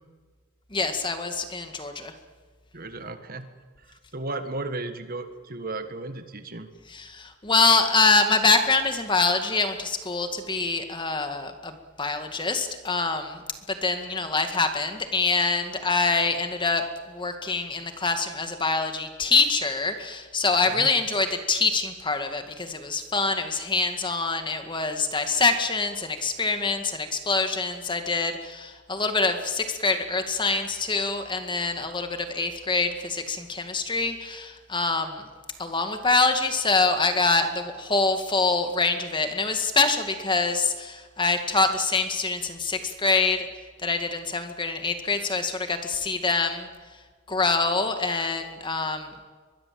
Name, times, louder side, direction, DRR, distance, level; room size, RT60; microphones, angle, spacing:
voice 1, 0.7-2.1 6.9-13.4 13.7-35.3 35.6-43.5 43.8-46.7 47.3-49.1, left 3 dB, 20° left, 7 dB, 2.0 m, -25 dB
voice 2, 2.7-3.5 3.8-6.7 20.7-20.9, right 2 dB, 45° right, 9 dB, 1.7 m, -35 dB
23.5 x 22.0 x 7.7 m, 1.5 s
head